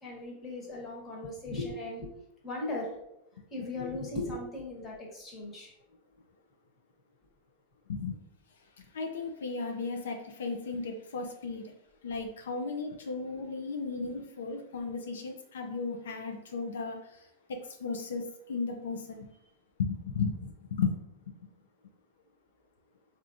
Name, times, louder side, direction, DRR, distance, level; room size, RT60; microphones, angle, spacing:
voice 1, 0.0-2.1 2.4-2.9 3.5-5.7, left 2 dB, 30° left, -2 dB, 1.1 m, -37 dB
voice 2, 8.9-11.6 12.0-17.0 17.5-18.2 18.5-19.3 19.8-21.0, left 4 dB, 85° left, 4 dB, 0.4 m, -35 dB
3.3 x 2.5 x 2.5 m, 0.84 s
hypercardioid pair, 115°, 0 cm